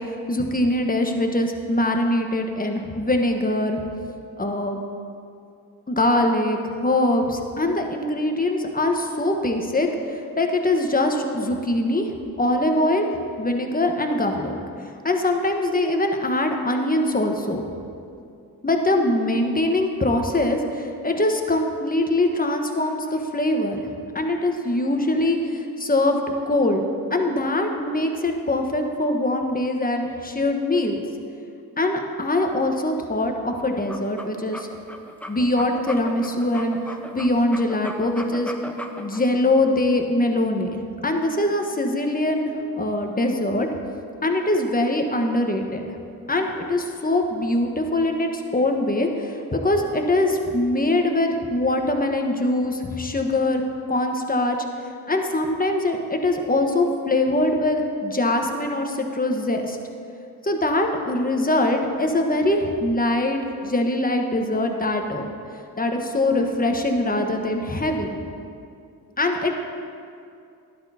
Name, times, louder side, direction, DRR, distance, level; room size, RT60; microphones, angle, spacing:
voice 1, 0.0-3.8 4.4-4.8 5.9-12.1 12.4-13.1 13.4-14.6 15.0-17.6 18.6-23.8 24.1-26.2 26.5-26.8 27.1-31.0 31.8-34.7 35.3-36.8 37.1-38.5 39.0-43.7 44.2-46.0 46.3-53.6 53.9-54.6 55.1-59.8 60.4-65.2 65.8-68.1 69.2-69.6, left 1 dB, 20° left, 3 dB, 1.2 m, -23 dB
sound 1, 33.7-39.2, left 1 dB, 5° left, 0.9 m, -37 dB
12.5 x 10.5 x 2.8 m, 2.5 s
supercardioid pair, 50°, 40 cm